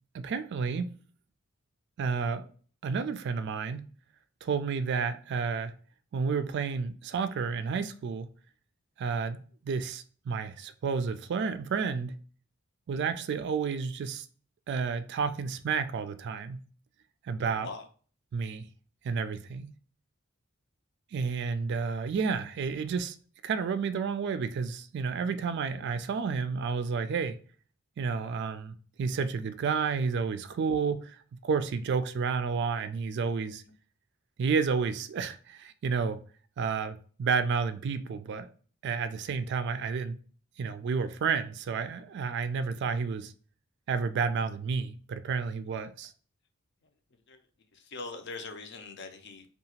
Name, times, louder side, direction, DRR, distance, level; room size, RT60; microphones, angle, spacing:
voice 1, 0.1-0.9 2.0-2.5 2.8-3.9 4.4-5.7 6.1-8.3 9.0-12.2 12.9-14.3 14.7-16.6 17.2-17.7 18.3-18.7 19.0-19.7 21.1-23.2 23.4-27.4 28.0-33.6 34.4-36.2 36.6-38.5 38.8-40.2 40.6-43.3 43.9-46.1, right 5 dB, 55° right, 0.3 m, -31 dB
voice 2, 17.5-17.9 25.8-25.9 33.6-33.7 47.3-47.4 47.7-49.5, left 3 dB, 60° left, 0.5 m, -42 dB
2.8 x 2.3 x 2.8 m
head